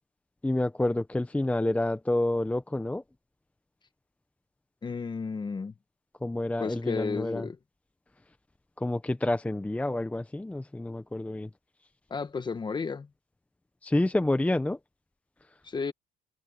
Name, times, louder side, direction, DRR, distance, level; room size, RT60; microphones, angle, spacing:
voice 1, 0.4-3.0 6.2-7.5 8.8-11.5 13.8-14.8, left 1 dB, 10° left, 0.9 m, -28 dB
voice 2, 4.8-5.7 6.6-7.6 12.1-13.1 15.6-15.9, left 5 dB, 25° left, 1.4 m, -33 dB
cardioid pair, 110°, 17 cm